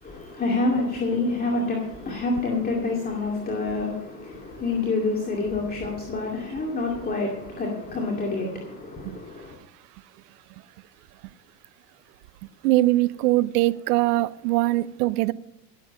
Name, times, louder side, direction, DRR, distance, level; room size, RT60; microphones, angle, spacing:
voice 1, 0.0-9.6, left 3 dB, 20° left, 2.4 m, -27 dB
voice 2, 12.6-15.3, right 17 dB, 65° right, 0.7 m, -22 dB
17.0 x 7.7 x 5.2 m
hypercardioid pair, 95°, 49 cm